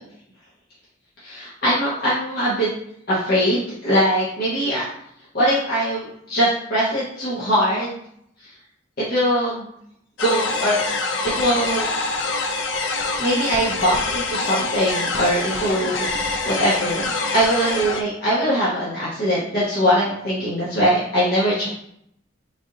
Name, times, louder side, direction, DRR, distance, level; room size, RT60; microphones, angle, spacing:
voice 1, 1.2-2.7 3.1-4.9 5.3-8.0 9.1-9.7 10.2-10.8 11.2-11.9 13.2-16.1 16.4-21.7, equal, 55° left, -8 dB, 0.9 m, -21 dB
sound 1, 10.2-18.0, left 3 dB, 70° left, 0.4 m, -25 dB
3.3 x 2.6 x 3.8 m, 0.72 s
head